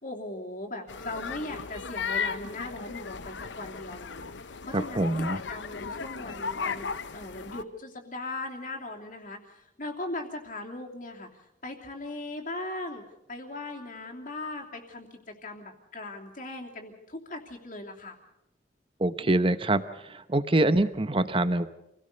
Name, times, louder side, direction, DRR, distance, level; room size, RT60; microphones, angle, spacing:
voice 1, 0.0-4.3 4.6-5.1 5.5-11.3 11.6-13.0 13.3-18.2, left 2 dB, 45° left, 0 dB, 3.0 m, -39 dB
sound 1, 0.9-7.6, left 5 dB, 80° left, 0.8 m, -36 dB
voice 2, 4.7-5.4 19.0-19.8 20.1-21.7, right 2 dB, 30° right, 12 dB, 0.9 m, -25 dB
27.0 x 17.5 x 6.8 m, 0.87 s
head